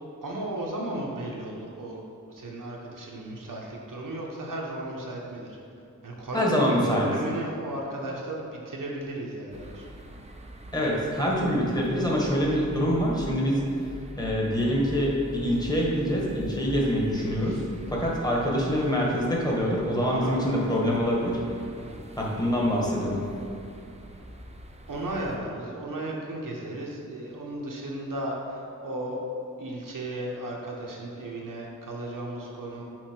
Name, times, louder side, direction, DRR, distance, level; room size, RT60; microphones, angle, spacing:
voice 1, 0.2-2.0 2.3-5.6 6.0-9.9 17.4-17.6 20.0-21.1 21.8-22.0 24.9-29.2 29.6-32.8, right 1 dB, 85° right, -2 dB, 1.0 m, -35 dB
voice 2, 6.3-7.1 10.7-13.9 14.2-21.4 22.2-23.3, equal, 10° left, -4 dB, 1.3 m, -25 dB
sound 1, 9.5-25.4, right 1 dB, 20° right, 0.5 m, -44 dB
6.2 x 4.3 x 4.4 m, 2.5 s
wide cardioid pair, 70°, 31 cm